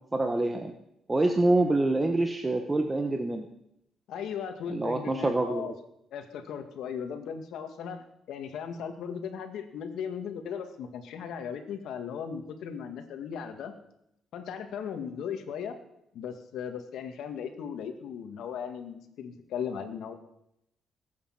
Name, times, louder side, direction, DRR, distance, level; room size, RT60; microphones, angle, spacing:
voice 1, 0.1-0.7 1.1-3.5 4.7-5.7, right 2 dB, 20° right, 4 dB, 1.3 m, -26 dB
voice 2, 4.1-5.7 6.1-13.7 14.3-15.8 16.1-20.1, left 7 dB, 80° left, 7 dB, 1.9 m, -37 dB
20.0 x 8.8 x 5.9 m, 0.80 s
cardioid pair, 90°, 0 cm